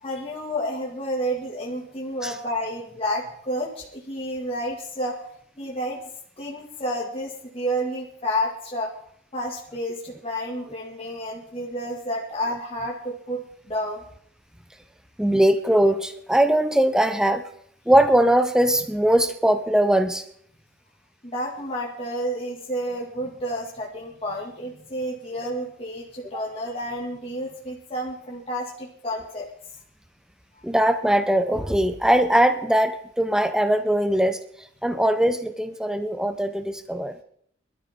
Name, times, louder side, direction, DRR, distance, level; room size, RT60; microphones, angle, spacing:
voice 1, 0.0-5.2 5.6-6.0 6.4-8.9 9.3-13.4 13.7-14.0 21.2-29.5, equal, 30° left, -3 dB, 2.0 m, -30 dB
voice 2, 15.2-17.4 17.9-20.3 26.3-26.4 30.6-37.1, right 1 dB, 5° right, 9 dB, 0.5 m, -21 dB
22.5 x 12.5 x 3.6 m, 0.65 s
head